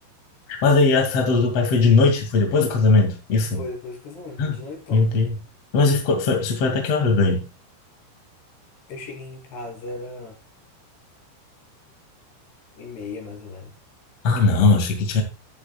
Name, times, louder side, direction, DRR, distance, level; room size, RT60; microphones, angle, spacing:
voice 1, 0.6-3.6 4.4-4.6 4.9-5.3 5.7-7.4 14.2-15.2, left 3 dB, 40° left, 2.6 m, -19 dB
voice 2, 3.6-5.2 8.9-10.4 12.8-13.7, left 3 dB, 65° left, 5.0 m, -36 dB
11.5 x 10.5 x 2.3 m
omnidirectional pair, 5.3 m